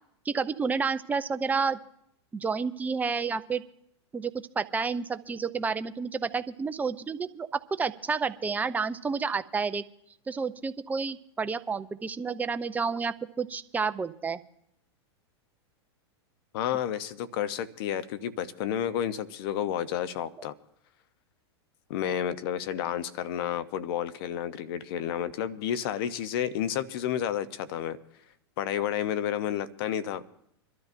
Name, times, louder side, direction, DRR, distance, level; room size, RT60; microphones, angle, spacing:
voice 1, 0.3-1.8 2.3-3.6 4.1-7.5 7.8-9.8 10.3-14.4, right 5 dB, 10° right, 11 dB, 0.5 m, -30 dB
voice 2, 16.5-20.5 21.9-28.0 28.6-30.2, left 10 dB, 60° left, 14 dB, 0.8 m, -31 dB
25.5 x 12.5 x 2.6 m, 0.74 s
hypercardioid pair, 120°, 14 cm